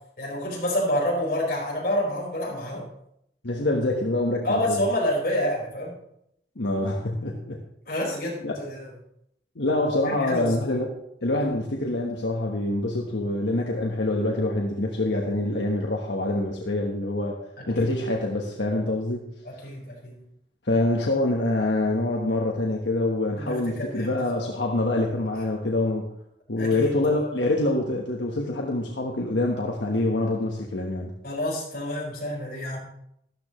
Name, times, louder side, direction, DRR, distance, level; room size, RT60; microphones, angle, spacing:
voice 1, 0.2-2.9 4.4-6.0 7.9-8.8 10.1-10.5 17.7-17.9 19.4-20.2 23.4-24.2 26.6-26.9 31.2-32.8, left 1 dB, 55° left, -4 dB, 4.7 m, -28 dB
voice 2, 3.4-4.8 6.6-7.6 8.4-8.6 9.5-10.9 11.2-17.4 17.7-19.2 20.6-26.1 26.5-31.1, left 2 dB, 85° left, 0 dB, 1.3 m, -25 dB
13.0 x 12.0 x 3.1 m, 0.76 s
head